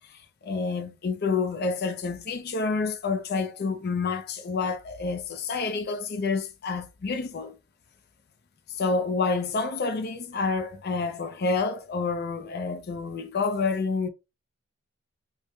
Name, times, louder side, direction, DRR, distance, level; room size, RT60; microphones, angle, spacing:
voice 1, 0.1-7.6 8.7-14.1, left 4 dB, 45° left, 0.4 m, -28 dB
3.2 x 2.1 x 3.2 m
head